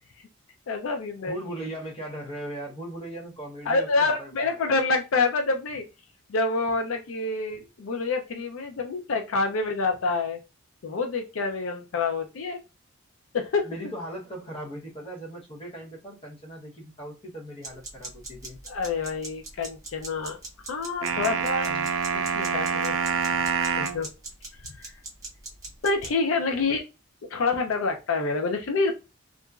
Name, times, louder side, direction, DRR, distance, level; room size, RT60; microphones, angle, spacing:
voice 1, 0.7-1.3 3.7-5.8 6.3-10.4 10.8-12.6 13.3-13.7 18.7-20.4 20.7-21.7 22.4-22.9 23.7-24.1 24.8-24.9 25.8-26.8 27.3-28.9, left 3 dB, 75° left, 4 dB, 0.4 m, -27 dB
voice 2, 1.2-4.7 13.6-18.6 21.7-21.9, right 1 dB, 25° left, -3 dB, 0.9 m, -38 dB
sound 1, 17.6-26.1, right 2 dB, 15° right, 0.6 m, -42 dB
sound 2, 21.0-24.0, right 6 dB, 80° right, 0.4 m, -26 dB
2.8 x 2.5 x 2.3 m, 0.27 s
head